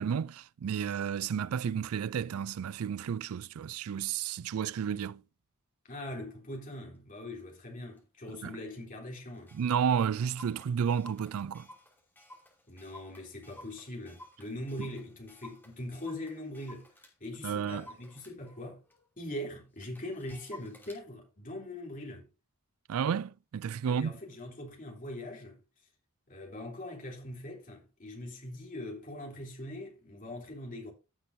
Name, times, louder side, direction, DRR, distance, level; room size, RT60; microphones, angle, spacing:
voice 1, 0.0-5.2 8.4-8.5 9.5-11.7 17.4-17.9 22.9-24.1, right 7 dB, 85° right, 0.4 m, -31 dB
voice 2, 5.8-9.6 12.7-16.9 17.2-18.8 19.2-22.3 23.8-25.6 26.3-30.9, left 1 dB, 40° left, 3.2 m, -42 dB
Clock, 7.2-7.4 8.0-8.1 8.3-8.4 8.8-8.9 9.1-17.1 17.6-21.0, left 1 dB, 10° left, 2.6 m, -54 dB
15.5 x 6.2 x 2.7 m
head